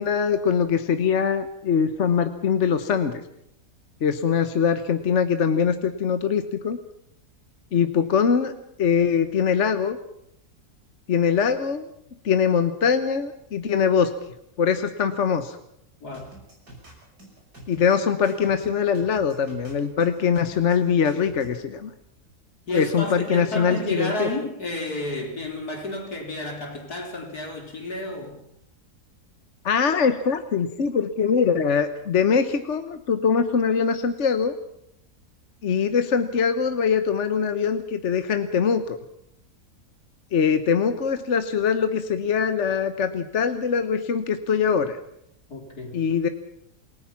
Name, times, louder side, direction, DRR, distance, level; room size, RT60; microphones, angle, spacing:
voice 1, 0.0-3.2 4.0-6.8 7.7-8.5 8.8-10.0 11.1-11.9 12.2-14.1 14.6-15.6 17.7-21.9 22.7-24.3 29.6-34.5 35.6-39.0 40.3-45.0 45.9-46.3, left 6 dB, 50° left, 9 dB, 1.2 m, -22 dB
voice 2, 16.0-16.3 22.6-28.4 45.5-46.0, left 1 dB, 70° left, 2 dB, 4.7 m, -31 dB
sound 1, 16.1-21.6, right 1 dB, 85° right, 7.0 m, -46 dB
28.0 x 18.0 x 5.9 m, 0.76 s
omnidirectional pair, 1.7 m